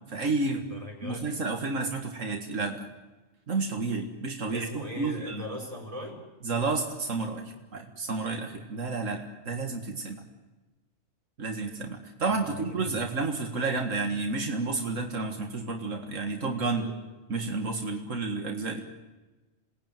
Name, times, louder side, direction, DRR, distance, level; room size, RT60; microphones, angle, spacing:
voice 1, 0.1-0.6 1.0-2.9 3.5-5.4 6.4-10.2 11.4-16.9 17.3-18.8, right 3 dB, 85° right, 3 dB, 2.3 m, -31 dB
voice 2, 0.7-1.4 4.5-6.2 12.4-12.7 16.7-17.0, equal, 25° right, -1 dB, 6.2 m, -39 dB
27.5 x 19.0 x 9.3 m, 1.2 s
omnidirectional pair, 1.3 m